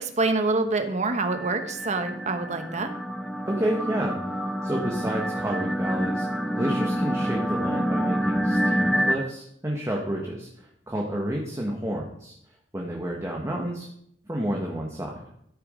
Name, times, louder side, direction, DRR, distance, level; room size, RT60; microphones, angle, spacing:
voice 1, 0.0-2.9, right 3 dB, 40° right, 7 dB, 1.2 m, -26 dB
sound 1, 1.3-9.2, equal, ahead, 0.5 m, -27 dB
voice 2, 3.4-4.2 4.6-6.2 6.5-10.5 10.9-12.3 12.7-13.9 14.3-15.2, right 1 dB, 15° right, -1 dB, 1.3 m, -30 dB
13.5 x 6.9 x 5.0 m, 0.73 s
head